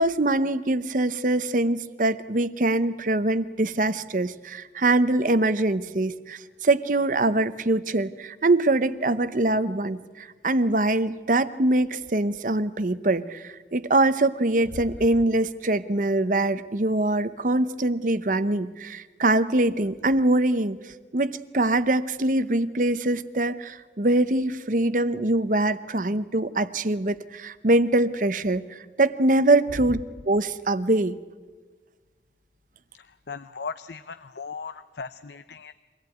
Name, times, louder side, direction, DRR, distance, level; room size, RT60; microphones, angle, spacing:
voice 1, 0.0-20.8 21.1-30.0 30.3-31.2, right 2 dB, 45° right, 14 dB, 0.8 m, -23 dB
voice 2, 33.3-35.7, left 5 dB, 75° left, 11 dB, 0.6 m, -37 dB
24.5 x 17.5 x 9.3 m, 1.4 s
head